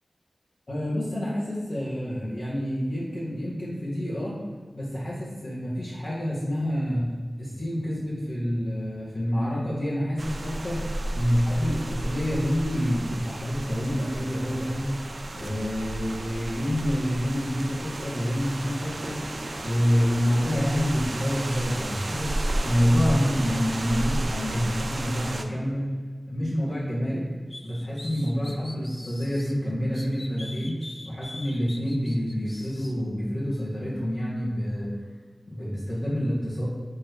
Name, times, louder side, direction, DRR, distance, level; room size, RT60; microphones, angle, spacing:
voice 1, 0.7-4.4 4.7-7.1 7.4-15.0 15.3-19.3 19.6-25.9 26.3-27.3 27.6-30.8 31.0-34.9 35.5-36.6, equal, 70° left, -11 dB, 1.9 m, -27 dB
sound 1, 10.2-25.4, right 1 dB, 65° right, 0.6 m, -33 dB
sound 2, 27.5-29.5 29.9-32.9, left 1 dB, 45° left, 0.7 m, -43 dB
7.5 x 3.2 x 4.7 m, 1.5 s
cardioid pair, 40°, 0 cm